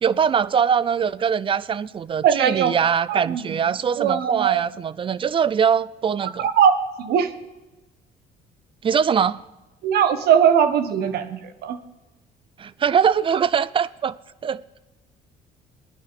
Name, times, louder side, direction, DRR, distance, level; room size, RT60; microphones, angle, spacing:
voice 1, 0.0-6.5 8.8-9.4 12.6-14.2 14.4-14.8, right 7 dB, 30° right, 0.5 m, -22 dB
voice 2, 2.2-2.7 3.1-3.5 4.0-4.6 6.4-7.3 9.8-11.8, right 8 dB, 70° right, 1.2 m, -20 dB
19.0 x 11.0 x 4.1 m
cardioid pair, 110°, 17 cm